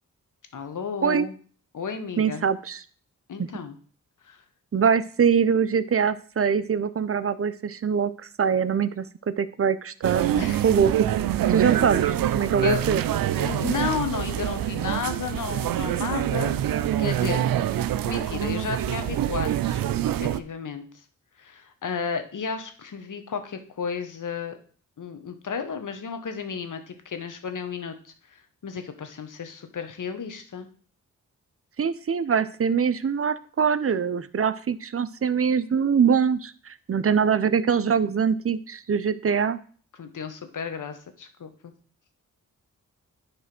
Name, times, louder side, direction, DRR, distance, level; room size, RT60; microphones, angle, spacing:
voice 1, 0.5-1.3 1.7-2.5 3.3-3.8 4.2-4.4 10.3-10.6 12.6-12.8 13.3-17.4 18.0-20.9 21.4-24.6 25.0-30.7 40.0-41.7, left 6 dB, 65° left, 8 dB, 1.2 m, -33 dB
voice 2, 2.2-2.8 3.4-3.5 4.7-8.1 8.4-10.2 10.6-11.1 11.5-13.0 31.8-39.6, right 6 dB, 45° right, 13 dB, 0.6 m, -23 dB
sound 1, 10.0-20.4, right 11 dB, 85° right, 0.5 m, -25 dB
9.9 x 3.4 x 6.0 m, 0.43 s
cardioid pair, 55°, 33 cm